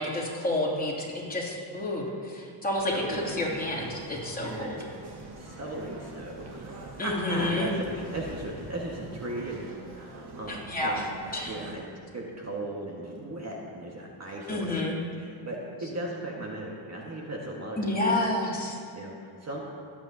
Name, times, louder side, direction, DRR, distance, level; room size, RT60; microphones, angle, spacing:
voice 1, 0.0-4.8 7.0-7.7 10.5-11.0 11.3-11.5 14.5-15.0 17.8-18.8, left 1 dB, 15° left, -4 dB, 2.8 m, -29 dB
sound 1, 2.8-11.7, right 2 dB, 50° right, 1.7 m, -44 dB
voice 2, 2.9-3.4 4.4-4.9 5.4-11.0 11.5-11.8 12.1-18.3 18.9-19.6, right 1 dB, 30° right, -2 dB, 1.7 m, -37 dB
20.0 x 8.6 x 2.9 m, 2.2 s
cardioid pair, 85°, 49 cm